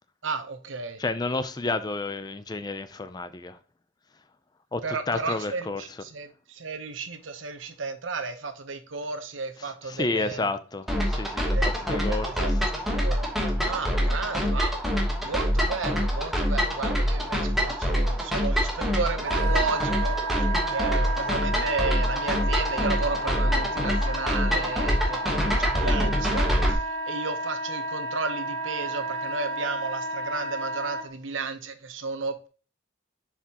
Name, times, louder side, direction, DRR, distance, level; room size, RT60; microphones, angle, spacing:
voice 1, 0.2-1.0 4.8-10.5 11.5-12.7 13.0-13.3 13.6-32.5, right 4 dB, 85° right, 0.9 m, -33 dB
voice 2, 1.0-3.6 4.7-4.8 5.1-5.8 9.6-11.6 11.8-12.3, left 3 dB, 20° left, 0.4 m, -30 dB
sound 1, 10.9-26.7, equal, ahead, 1.2 m, -25 dB
Wind instrument woodwind instrument, 19.2-31.0, right 2 dB, 60° right, 1.6 m, -32 dB
7.0 x 4.8 x 2.9 m
head